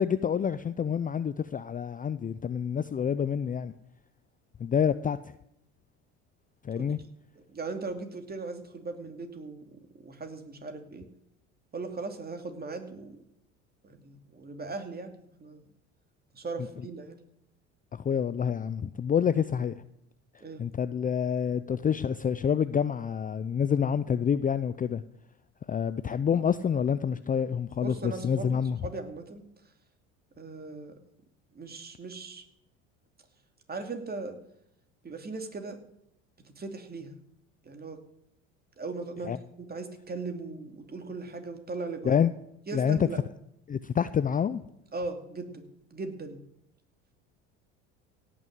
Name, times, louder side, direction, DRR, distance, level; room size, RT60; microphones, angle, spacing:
voice 1, 0.0-3.7 4.6-5.3 6.6-7.0 17.9-19.7 20.6-25.0 25.7-28.8 39.2-39.4 42.0-42.3 42.7-43.0 43.7-44.6, left 7 dB, 20° left, 0.5 m, -27 dB
voice 2, 7.5-11.1 11.7-13.2 13.8-15.6 16.3-17.2 20.4-20.6 27.8-29.4 30.4-31.0 31.5-32.4 33.7-34.4 35.0-35.8 36.6-37.1 37.6-38.0 38.8-42.2 42.7-43.2 44.9-45.7 45.9-46.4, right 3 dB, 25° right, 2.6 m, -38 dB
17.0 x 6.2 x 7.8 m
hypercardioid pair, 75°, 38 cm